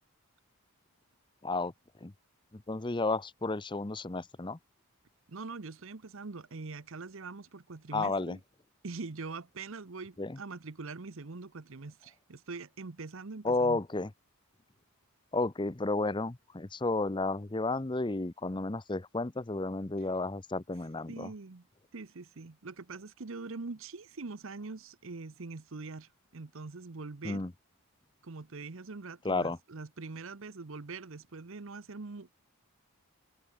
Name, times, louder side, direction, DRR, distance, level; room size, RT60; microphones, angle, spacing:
voice 1, 2.5-4.6 7.9-8.4 10.2-10.4 13.4-14.1 15.3-21.3 27.2-27.5 29.2-29.6, left 2 dB, 20° left, 0.7 m, -32 dB
voice 2, 5.3-8.4 8.8-13.8 21.1-21.6 21.9-27.4 28.2-32.3, right 3 dB, 60° right, 0.8 m, -43 dB
head